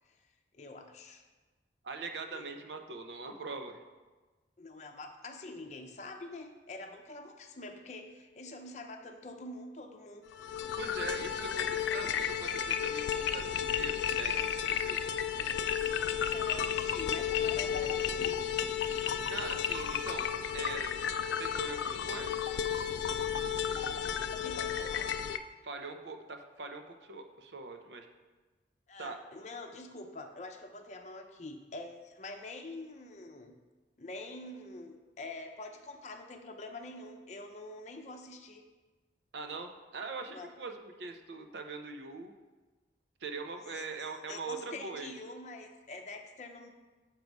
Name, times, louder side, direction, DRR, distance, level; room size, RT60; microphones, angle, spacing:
voice 1, 0.5-1.2 2.3-2.4 4.6-10.2 15.9-18.4 24.4-25.2 28.9-33.6 34.0-38.6 40.3-40.5 43.7-46.7, left 2 dB, 40° left, 4 dB, 0.6 m, -46 dB
voice 2, 1.8-3.8 10.8-15.0 19.3-20.9 21.4-22.4 25.6-28.1 29.0-29.2 39.3-42.3 43.2-45.1, right 4 dB, 80° right, 5 dB, 0.7 m, -42 dB
sound 1, 10.3-25.4, left 8 dB, 90° left, 0.3 m, -33 dB
6.7 x 4.6 x 5.3 m, 1.3 s
head